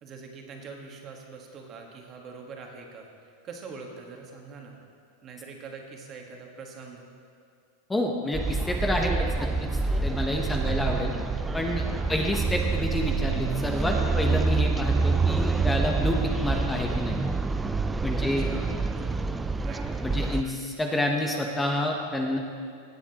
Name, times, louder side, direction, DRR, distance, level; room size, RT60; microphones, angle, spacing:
voice 1, 0.0-4.8 5.2-7.1 10.3-10.8 11.9-12.2 18.2-19.8 20.1-20.6, right 4 dB, 35° right, 1 dB, 1.4 m, -44 dB
voice 2, 7.9-9.1 9.4-11.1 11.5-17.2 18.0-18.5 20.0-22.4, left 1 dB, 10° left, 1 dB, 0.8 m, -29 dB
sound 1, 8.3-20.4, right 4 dB, 10° right, 0.3 m, -27 dB
17.0 x 7.1 x 2.9 m, 2.3 s
hypercardioid pair, 120°, 0 cm